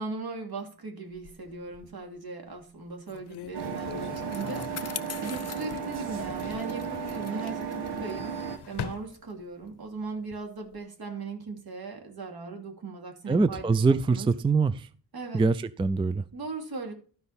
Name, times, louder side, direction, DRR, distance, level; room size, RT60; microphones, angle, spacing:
voice 1, 0.0-8.3 8.7-14.3 15.1-15.4 16.3-16.9, right 4 dB, 65° right, 2 dB, 2.8 m, -38 dB
sound 1, 1.1-2.1 2.6-2.7 3.1-5.7 6.0-6.8 8.0-9.7 10.2-10.8, left 9 dB, 80° left, 0.8 m, -43 dB
Bicycle, 3.1-9.9, left 8 dB, 40° left, 0.5 m, -44 dB
sound 2, 3.5-8.6, right 6 dB, 85° right, 1.4 m, -34 dB
voice 2, 13.3-14.9 15.3-16.2, right 4 dB, 15° right, 15 dB, 0.3 m, -24 dB
13.0 x 5.3 x 4.2 m, 0.42 s
wide cardioid pair, 120°, 39 cm